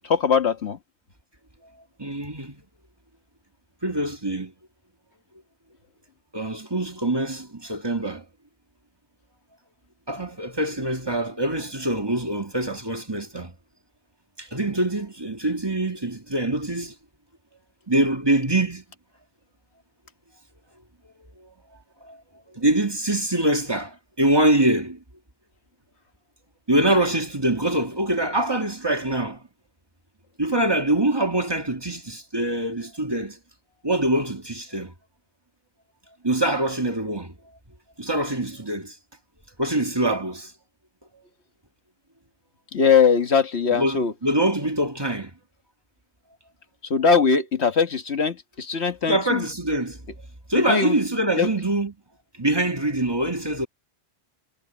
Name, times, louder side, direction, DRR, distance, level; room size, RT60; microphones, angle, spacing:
voice 1, 0.0-0.8 42.7-44.1 46.8-49.5 50.5-51.0 51.4-51.5, left 6 dB, 80° left, 1.8 m, -21 dB
voice 2, 2.0-2.6 3.8-4.5 6.3-8.2 10.1-13.5 14.4-16.9 17.9-18.8 22.0-22.2 22.5-25.0 26.7-29.4 30.4-33.4 33.8-34.9 36.2-37.3 38.0-39.0 39.6-40.5 43.7-45.3 49.0-50.0 50.5-51.9 52.4-53.7, right 1 dB, 20° right, 2.2 m, -24 dB
omnidirectional pair, 1.1 m